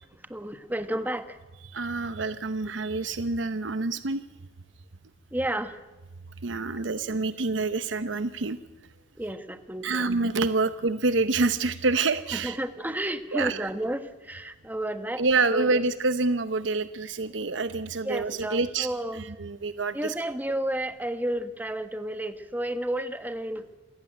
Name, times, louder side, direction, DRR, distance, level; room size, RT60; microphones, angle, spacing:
voice 1, 0.3-1.4 5.3-5.8 9.2-10.2 12.3-15.2 15.5-15.8 18.0-19.2 19.9-23.8, right 1 dB, 10° right, 10 dB, 1.3 m, -31 dB
voice 2, 1.7-4.2 6.4-8.6 9.8-12.6 13.3-13.7 15.2-20.1, right 3 dB, 90° right, 12 dB, 0.9 m, -27 dB
27.0 x 15.5 x 9.1 m, 1.1 s
head